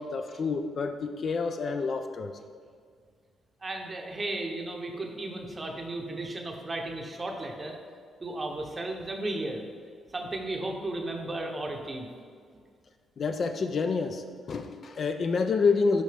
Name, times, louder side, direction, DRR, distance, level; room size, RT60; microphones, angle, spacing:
voice 1, 0.0-2.3 13.2-16.0, left 4 dB, 45° left, 7 dB, 0.3 m, -28 dB
voice 2, 3.6-7.7 8.2-9.6 10.1-12.1, right 2 dB, 20° right, 2 dB, 0.7 m, -34 dB
6.5 x 5.3 x 3.3 m, 2.1 s
cardioid pair, 140°, 0 cm